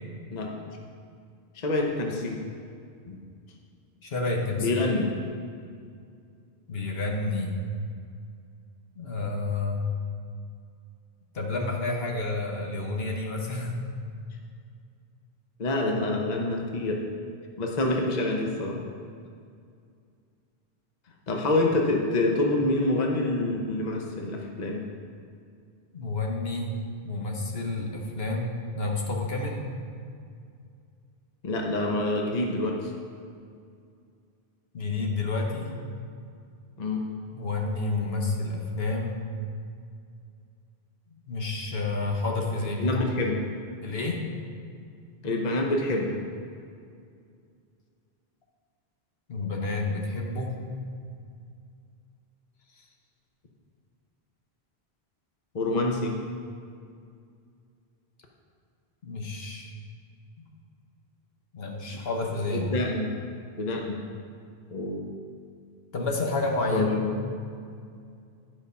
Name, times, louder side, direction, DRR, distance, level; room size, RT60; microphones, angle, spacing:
voice 1, 1.5-2.4 3.1-3.2 4.6-5.1 15.6-17.0 17.6-18.8 21.3-24.8 31.4-32.9 36.8-37.1 42.8-43.5 45.2-46.2 55.5-56.2 61.9-62.0 62.7-63.1 63.6-64.0 64.7-65.1 66.7-67.1, left 2 dB, 45° left, 0 dB, 0.9 m, -27 dB
voice 2, 4.0-4.9 6.7-7.5 9.0-9.9 11.3-13.7 25.9-26.7 27.0-29.6 34.7-35.7 37.3-39.2 41.3-43.0 43.8-44.2 49.3-50.6 59.0-59.7 61.5-62.7 65.9-66.9, left 3 dB, 70° left, 0 dB, 1.3 m, -29 dB
10.5 x 5.3 x 5.5 m, 2.3 s
omnidirectional pair, 1.1 m